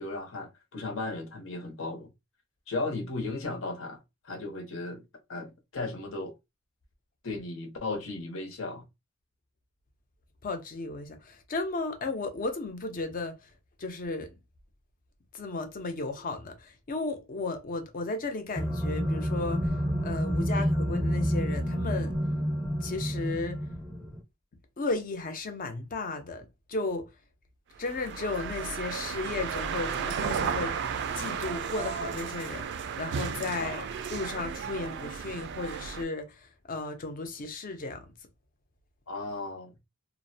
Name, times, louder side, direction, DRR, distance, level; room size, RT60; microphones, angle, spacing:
voice 1, 0.0-2.1 2.7-4.0 4.2-5.0 5.3-6.3 7.2-8.8 20.5-20.7 33.6-33.9 39.1-39.7, left 2 dB, 75° left, 0.7 m, -35 dB
voice 2, 10.4-13.5 13.8-14.4 15.3-19.7 20.0-22.1 22.8-23.6 24.8-27.1 27.8-30.7 31.1-33.8 34.1-38.0, left 3 dB, 45° left, 0.5 m, -34 dB
sound 1, 18.6-24.2, equal, 5° left, 0.7 m, -29 dB
sound 2, 27.8-36.0, right 6 dB, 60° right, 0.3 m, -34 dB
2.5 x 2.0 x 2.6 m
head